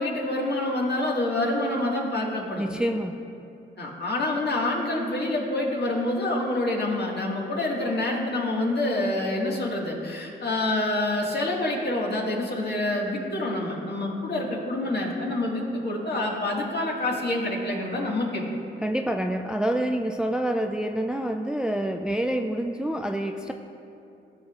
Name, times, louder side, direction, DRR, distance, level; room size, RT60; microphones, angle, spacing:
voice 1, 0.0-2.6 3.8-18.4, left 2 dB, 50° left, -2 dB, 1.8 m, -27 dB
voice 2, 2.6-3.2 18.8-23.5, right 1 dB, 5° right, 5 dB, 0.4 m, -27 dB
14.5 x 6.2 x 2.4 m, 2.7 s
supercardioid pair, 55°, 21 cm